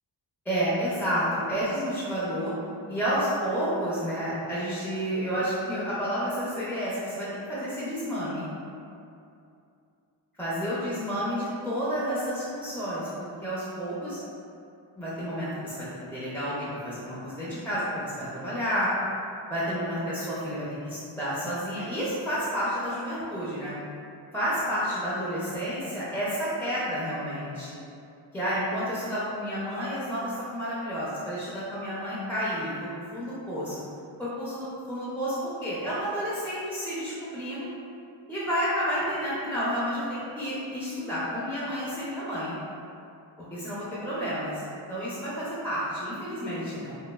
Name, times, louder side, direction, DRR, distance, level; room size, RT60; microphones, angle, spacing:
voice 1, 0.5-2.5 2.9-8.5 10.4-14.2 15.0-18.9 19.5-23.7 24.3-27.8 28.3-33.8 34.2-35.3 35.6-37.7 38.3-42.5 43.4-44.6 44.9-46.9, equal, 5° left, -10 dB, 0.4 m, -30 dB
3.0 x 2.2 x 2.2 m, 2.6 s
wide cardioid pair, 105°, 47 cm